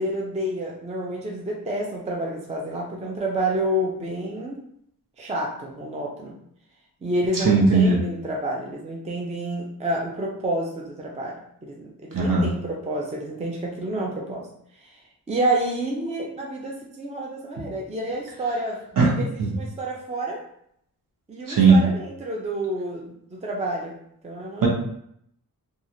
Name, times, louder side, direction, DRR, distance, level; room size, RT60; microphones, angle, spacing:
voice 1, 0.0-4.6 5.2-6.3 7.0-11.4 11.6-14.5 14.8-15.0 15.3-20.4 21.3-24.0 24.2-24.7, right 1 dB, 20° right, -1 dB, 0.4 m, -29 dB
voice 2, 7.3-8.0 12.1-12.4 19.0-19.1 19.4-19.5 21.5-21.8 24.6-24.7, right 4 dB, 60° right, -3 dB, 0.9 m, -17 dB
3.0 x 2.4 x 2.6 m, 0.70 s
wide cardioid pair, 130°, 38 cm